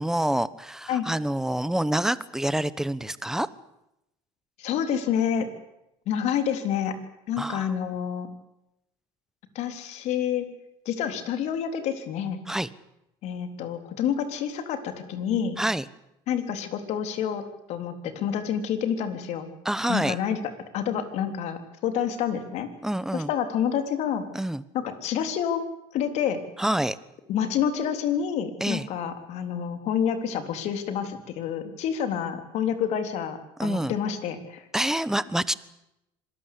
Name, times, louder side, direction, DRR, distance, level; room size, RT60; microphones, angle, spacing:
voice 1, 0.0-3.5 7.4-7.7 12.5-12.7 15.6-15.8 19.6-20.2 22.8-23.3 24.3-24.6 26.6-27.0 28.6-28.9 33.6-33.9 34.7-35.5, right 1 dB, 5° right, 16 dB, 1.1 m, -27 dB
voice 2, 4.6-5.5 6.1-6.9 7.3-8.3 9.6-10.5 10.9-12.4 13.2-15.6 16.3-17.4 17.7-19.5 19.9-20.4 20.7-22.7 23.1-24.2 24.7-25.6 25.9-26.4 27.3-34.6, left 8 dB, 65° left, 8 dB, 3.6 m, -28 dB
26.0 x 19.5 x 8.5 m, 0.87 s
cardioid pair, 115°, 12 cm